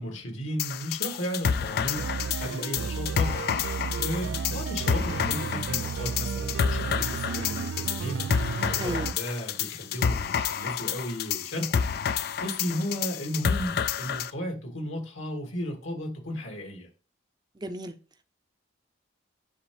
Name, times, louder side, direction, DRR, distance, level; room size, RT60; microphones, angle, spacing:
voice 1, 0.0-2.1 2.4-3.5 3.9-8.5 8.8-16.9, equal, 75° left, 2.3 m, -34 dB
sound 1, 0.6-14.3, left 7 dB, 50° left, 0.3 m, -29 dB
sound 2, 2.0-9.1, right 6 dB, 70° right, 0.3 m, -33 dB
voice 2, 8.8-9.1 17.6-18.0, right 1 dB, 20° right, 0.5 m, -34 dB
9.9 x 3.5 x 3.3 m
head